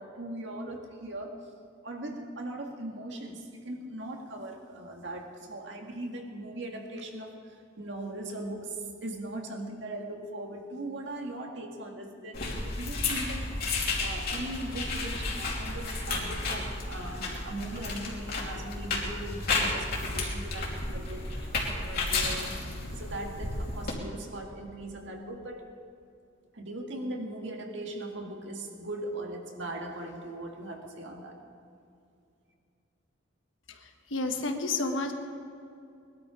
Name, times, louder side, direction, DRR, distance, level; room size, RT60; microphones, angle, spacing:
voice 1, 0.0-1.5 1.8-13.5 14.0-25.8 26.5-31.4, right 1 dB, 65° right, 1 dB, 2.1 m, -39 dB
sound 1, 12.3-23.9, left 3 dB, 50° left, 2.9 m, -32 dB
voice 2, 33.7-35.1, left 3 dB, 75° left, 5 dB, 1.5 m, -31 dB
21.0 x 12.0 x 5.1 m, 2.5 s
head